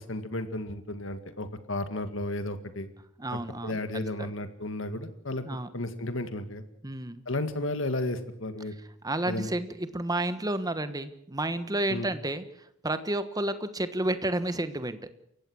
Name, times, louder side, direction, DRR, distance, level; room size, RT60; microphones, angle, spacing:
voice 1, 0.0-2.9 3.3-5.4 5.7-6.6 7.3-8.7 9.3-9.5 11.9-12.1, left 1 dB, 70° left, 10 dB, 2.0 m, -33 dB
voice 2, 3.2-3.8 4.2-4.3 5.4-5.7 6.8-7.2 9.0-12.4 12.8-15.1, right 1 dB, 20° right, 11 dB, 1.3 m, -31 dB
28.5 x 15.5 x 6.4 m, 0.72 s
head